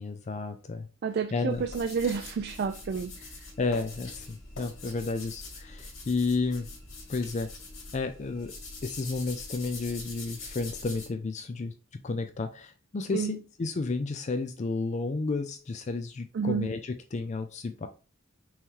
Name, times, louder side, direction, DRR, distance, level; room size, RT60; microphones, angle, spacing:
voice 1, 0.0-0.9 1.3-1.6 3.6-6.7 7.1-7.5 7.9-8.5 8.8-11.7 12.0-17.9, left 3 dB, 35° left, 0.4 m, -32 dB
voice 2, 1.0-3.3 13.1-13.4 16.3-16.7, right 6 dB, 55° right, 0.3 m, -30 dB
sound 1, 1.5-11.1, left 3 dB, 75° left, 2.1 m, -44 dB
5.6 x 3.1 x 2.8 m
head